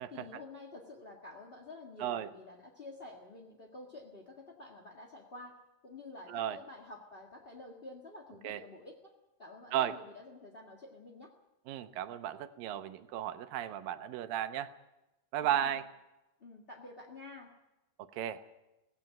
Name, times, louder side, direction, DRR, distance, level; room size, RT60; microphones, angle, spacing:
voice 1, 0.1-5.6 5.8-9.1 9.4-11.3 15.4-15.7 16.4-17.5, left 2 dB, 30° left, 1 dB, 1.1 m, -49 dB
voice 2, 11.7-14.7 15.3-15.9 18.1-18.4, right 11 dB, 85° right, 10 dB, 2.7 m, -34 dB
18.0 x 16.5 x 9.5 m, 1.0 s
omnidirectional pair, 3.9 m